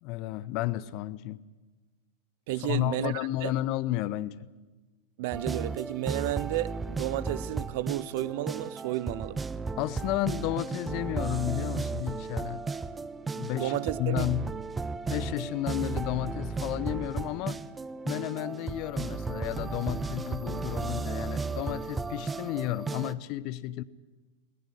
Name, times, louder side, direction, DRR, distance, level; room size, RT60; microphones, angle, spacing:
voice 1, 0.0-1.4 2.6-4.5 9.8-12.7 13.2-14.5 15.1-17.6 18.0-23.8, left 15 dB, 40° left, 0.8 m, -32 dB
voice 2, 2.5-3.5 5.2-9.5 13.5-14.2, right 15 dB, 50° right, 0.7 m, -32 dB
sound 1, 5.3-23.1, right 4 dB, 15° right, 0.7 m, -34 dB
20.5 x 18.0 x 9.7 m
figure-of-eight pair, 90°, 0 cm